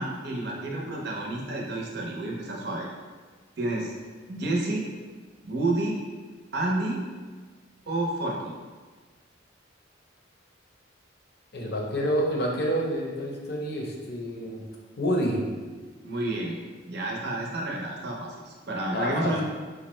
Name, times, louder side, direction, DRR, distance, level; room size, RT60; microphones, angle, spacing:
voice 1, 0.0-2.9 3.6-3.9 4.3-4.9 5.4-6.0 6.5-7.0 7.9-8.5 16.0-16.6 16.9-19.4, right 2 dB, 55° right, -2 dB, 0.6 m, -30 dB
voice 2, 11.5-14.6 15.0-15.4 18.9-19.3, equal, 55° left, -1 dB, 0.6 m, -28 dB
4.8 x 2.1 x 3.0 m, 1.4 s
head